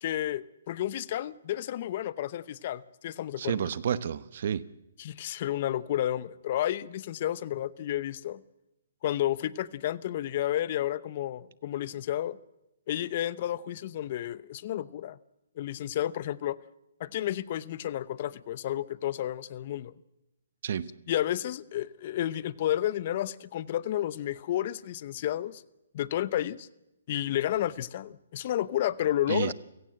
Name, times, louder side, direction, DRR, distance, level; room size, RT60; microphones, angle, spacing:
voice 1, 0.0-3.6 5.0-8.4 9.0-12.4 12.9-15.2 15.6-16.6 17.0-19.9 21.1-25.6 25.9-26.7 27.1-29.5, left 12 dB, 40° left, 0.7 m, -31 dB
voice 2, 3.4-4.7 20.6-20.9 29.3-29.5, right 8 dB, 55° right, 1.0 m, -30 dB
29.5 x 16.5 x 7.8 m
hypercardioid pair, 155°, 0 cm